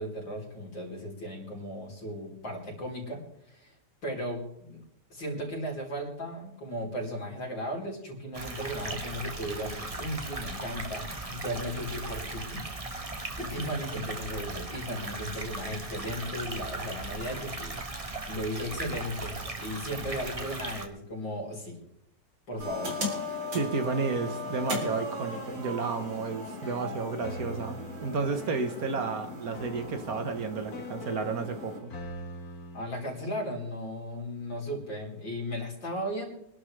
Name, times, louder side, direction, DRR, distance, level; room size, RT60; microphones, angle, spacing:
voice 1, 0.0-3.2 3.5-3.7 4.0-4.8 5.1-12.6 13.4-17.8 18.3-21.8 22.5-23.0 32.7-36.3, equal, 85° left, -2 dB, 4.9 m, -36 dB
sound 1, 8.3-20.8, right 2 dB, 20° right, 1.4 m, -38 dB
sound 2, 22.6-31.8, left 2 dB, 90° right, 4.2 m, -38 dB
voice 2, 23.5-31.9, right 4 dB, 55° right, 7 dB, 1.6 m, -32 dB
sound 3, 26.3-32.8, left 2 dB, 55° left, 1.9 m, -44 dB
25.0 x 11.5 x 3.3 m, 0.77 s
omnidirectional pair, 2.0 m